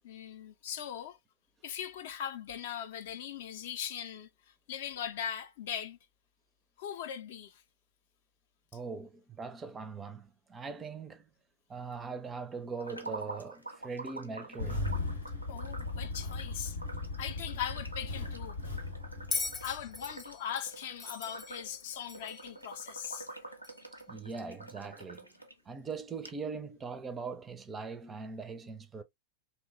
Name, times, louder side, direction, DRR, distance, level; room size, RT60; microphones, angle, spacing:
voice 1, 0.0-1.2 1.6-6.0 6.8-7.6 15.5-16.8 17.2-18.6 19.6-23.4, left 9 dB, 55° left, 0.4 m, -40 dB
voice 2, 8.7-11.3 11.7-14.9 24.1-25.3 25.7-29.0, right 4 dB, 20° right, 0.4 m, -41 dB
sound 1, 12.8-25.5 25.9-26.0 26.2-26.3, right 2 dB, 85° right, 0.5 m, -47 dB
Engine starting, 14.6-20.1, left 3 dB, 85° left, 0.7 m, -37 dB
Bell, 19.3-22.5 23.6-23.8, left 4 dB, 20° left, 0.7 m, -39 dB
2.9 x 2.1 x 2.4 m
figure-of-eight pair, 90°, 0 cm